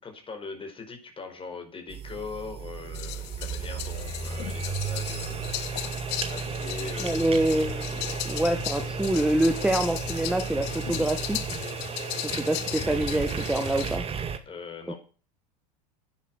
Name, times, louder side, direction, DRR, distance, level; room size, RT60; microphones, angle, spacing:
voice 1, 0.0-7.3 14.5-15.0, left 4 dB, 25° left, 6 dB, 4.9 m, -41 dB
sound 1, 1.9-14.4, right 6 dB, 25° right, 1.9 m, -34 dB
sound 2, 2.9-14.0, left 16 dB, 55° left, 1.1 m, -36 dB
voice 2, 7.0-11.5 12.1-14.0, right 1 dB, 5° right, 6 dB, 1.4 m, -26 dB
10.5 x 10.0 x 6.3 m, 0.37 s
hypercardioid pair, 95°, 21 cm